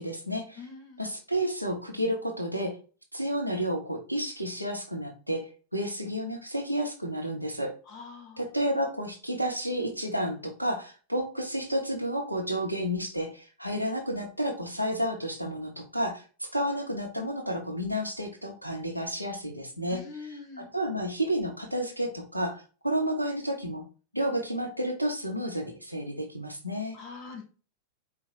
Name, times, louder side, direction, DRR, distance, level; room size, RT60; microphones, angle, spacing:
voice 1, 0.0-0.6 1.0-2.7 3.1-7.7 8.4-20.0 20.6-23.8 24.1-27.0, equal, 90° right, 1 dB, 0.9 m, -31 dB
voice 2, 0.6-1.0 7.9-8.4 19.9-20.7 26.9-27.4, left 4 dB, 35° left, 2 dB, 1.8 m, -43 dB
4.7 x 2.2 x 4.2 m, 0.36 s
figure-of-eight pair, 90°, 0 cm